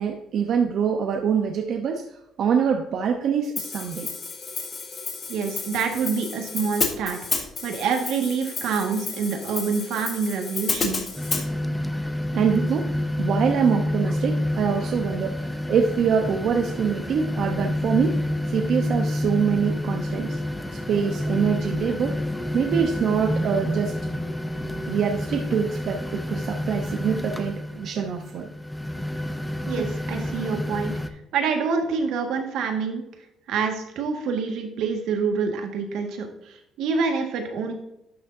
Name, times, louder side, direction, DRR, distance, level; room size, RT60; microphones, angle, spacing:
voice 1, 0.0-2.0 2.4-4.1 12.3-12.9 13.2-18.2 18.5-20.4 20.9-22.2 22.5-24.0 24.9-28.5 29.8-29.9, right 7 dB, 60° right, 3 dB, 0.8 m, -24 dB
Hi-hat, 3.6-11.5, left 5 dB, 35° left, 1.5 m, -31 dB
voice 2, 5.3-7.2 7.6-11.0 29.7-30.9 31.3-33.0 33.5-37.7, right 5 dB, 80° right, 4 dB, 1.7 m, -26 dB
sound 1, 11.2-31.1, left 1 dB, 5° left, 0.6 m, -28 dB
12.0 x 6.4 x 2.7 m, 0.85 s
cardioid pair, 145°, 0 cm